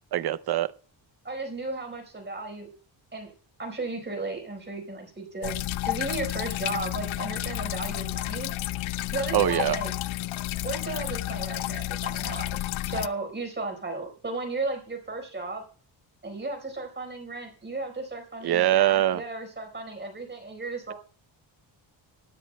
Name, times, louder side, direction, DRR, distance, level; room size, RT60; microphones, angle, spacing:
voice 1, 0.1-0.7 9.3-9.8 18.4-19.2, right 12 dB, 55° right, 0.7 m, -23 dB
voice 2, 1.2-2.7 3.1-3.3 3.6-8.5 9.1-9.9 10.6-15.6 16.2-20.9, right 3 dB, 20° right, 4.6 m, -35 dB
sound 1, 5.4-13.1, left 15 dB, 75° left, 0.5 m, -31 dB
18.5 x 13.5 x 2.2 m
wide cardioid pair, 160°, 47 cm